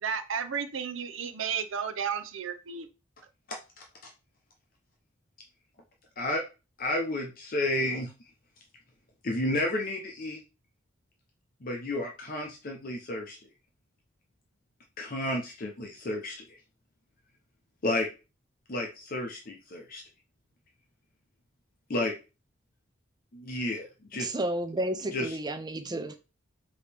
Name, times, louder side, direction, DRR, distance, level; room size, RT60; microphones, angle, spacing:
voice 1, 0.0-2.9, right 7 dB, 75° right, 0.6 m, -33 dB
voice 2, 3.5-3.8 6.2-6.4 6.8-8.1 9.2-10.4 11.6-13.4 15.0-16.6 17.8-18.1 18.7-20.0 21.9-22.1 23.3-24.3 25.1-25.3, left 1 dB, 45° left, 0.7 m, -31 dB
voice 3, 24.2-26.2, right 1 dB, 20° right, 0.5 m, -32 dB
4.9 x 2.9 x 3.4 m
head